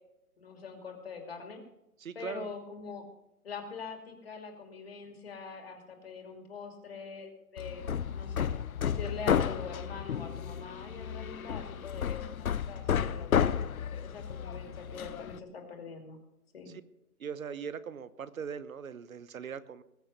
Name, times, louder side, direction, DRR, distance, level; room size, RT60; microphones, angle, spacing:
voice 1, 0.4-1.6 2.1-3.0 3.4-8.5 8.8-13.5 14.0-16.2 16.5-16.8, left 5 dB, 40° left, 3 dB, 2.7 m, -44 dB
voice 2, 2.0-2.5 16.7-16.8 17.2-19.8, right 6 dB, 65° right, 15 dB, 1.0 m, -40 dB
Hammer, 7.6-15.4, left 8 dB, 65° left, 0.7 m, -32 dB
20.5 x 6.8 x 6.5 m, 0.89 s
hypercardioid pair, 180°, 45 cm